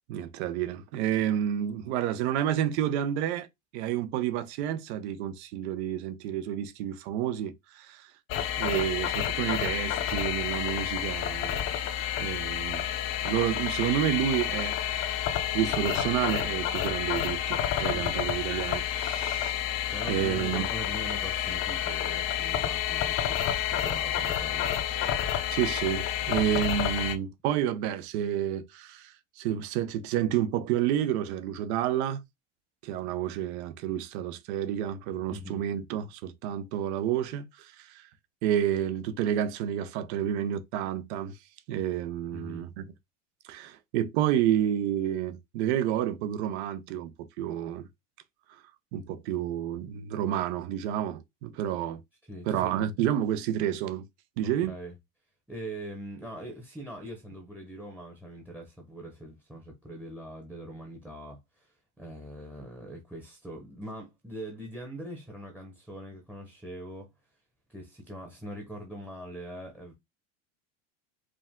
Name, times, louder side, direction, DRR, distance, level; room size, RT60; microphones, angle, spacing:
voice 1, 0.1-3.5 3.7-8.1 8.6-11.6 12.2-12.9 13.2-14.8 15.5-19.5 20.1-20.7 25.5-32.2 32.8-38.0 38.4-41.3 41.7-42.8 43.4-47.1 47.4-47.9 48.9-52.0 52.5-54.0 54.4-54.7, right 10 dB, 70° right, 0.8 m, -30 dB
sound 1, 8.3-27.1, left 10 dB, 40° left, 0.7 m, -29 dB
voice 2, 17.9-18.2 19.9-24.8 35.2-35.6 42.3-42.7 52.2-52.7 54.4-54.9 55.5-67.1 67.7-69.9, right 1 dB, 5° right, 0.9 m, -42 dB
5.0 x 2.4 x 3.6 m
supercardioid pair, 150°, 34 cm